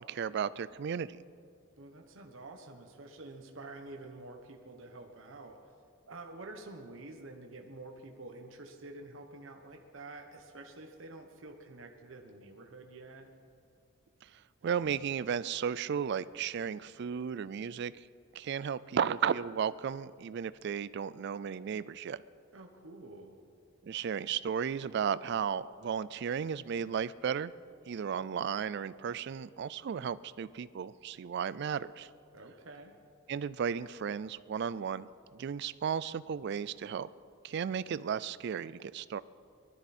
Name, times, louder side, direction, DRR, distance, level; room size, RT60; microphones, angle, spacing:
voice 1, 0.1-1.2 14.6-17.9 18.3-22.2 23.9-27.5 27.9-32.1 33.3-35.1 35.3-37.1 37.4-39.2, right 7 dB, 55° right, 17 dB, 0.3 m, -34 dB
voice 2, 1.8-5.6 6.1-13.3 22.5-23.4 32.3-32.9, right 2 dB, 75° right, 3 dB, 1.1 m, -48 dB
19.5 x 12.5 x 4.2 m, 2.3 s
head